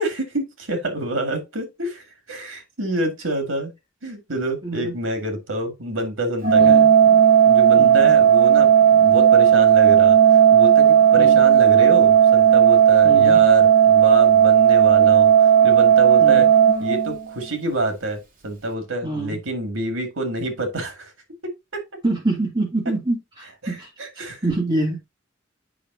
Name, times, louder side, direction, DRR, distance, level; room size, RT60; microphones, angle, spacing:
voice 1, 0.0-3.7 4.0-7.2 7.5-10.2 10.5-15.3 15.6-16.5 16.8-21.1 21.4-21.8 23.6-24.4, right 1 dB, 85° right, 2.0 m, -27 dB
voice 2, 4.6-4.9 6.6-6.9 7.8-8.1 11.2-11.4 13.0-13.4 16.2-16.5 19.0-19.4 22.0-23.9 24.2-25.0, right 2 dB, 20° right, 2.9 m, -26 dB
Organ, 6.4-17.5, right 9 dB, 45° right, 2.2 m, -14 dB
8.5 x 5.5 x 2.7 m
head